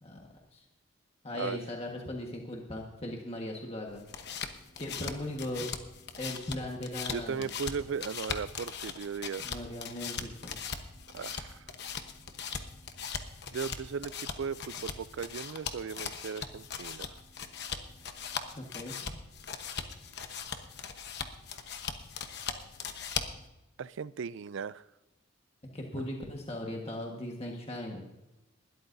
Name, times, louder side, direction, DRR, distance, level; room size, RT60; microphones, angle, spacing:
voice 1, 0.0-0.6 1.2-4.0 4.8-5.7 6.2-7.4 9.4-10.6 18.5-19.2 25.7-28.0, left 1 dB, 30° left, 1.4 m, -38 dB
sound 1, 3.9-23.5, left 6 dB, 50° left, 1.1 m, -40 dB
voice 2, 7.1-9.5 11.1-11.6 13.5-17.1 23.8-24.8, right 6 dB, 60° right, 0.4 m, -37 dB
20.0 x 13.0 x 2.7 m
head